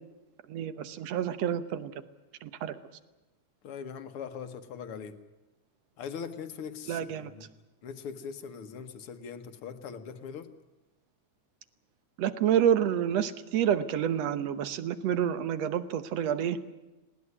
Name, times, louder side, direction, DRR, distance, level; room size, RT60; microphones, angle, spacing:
voice 1, 0.5-1.9 2.4-2.8 6.9-7.3 12.2-16.6, right 9 dB, 65° right, 12 dB, 2.0 m, -28 dB
voice 2, 3.6-5.2 6.0-7.5 7.8-10.5, left 6 dB, 55° left, 8 dB, 1.9 m, -41 dB
19.5 x 18.5 x 9.8 m, 1.1 s
omnidirectional pair, 3.5 m